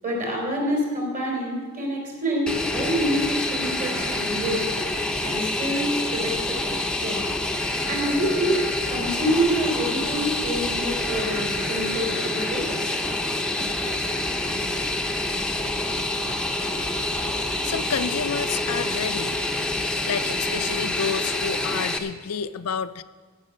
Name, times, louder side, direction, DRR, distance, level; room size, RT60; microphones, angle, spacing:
voice 1, 0.0-4.7 5.2-7.2 7.9-12.7, equal, 40° right, -1 dB, 3.7 m, -27 dB
Fixed-wing aircraft airplane, 2.5-22.0, left 2 dB, 5° left, 0.7 m, -27 dB
voice 2, 17.6-19.4 20.0-23.0, left 6 dB, 85° left, 12 dB, 0.5 m, -29 dB
15.0 x 6.2 x 7.7 m, 1.4 s
head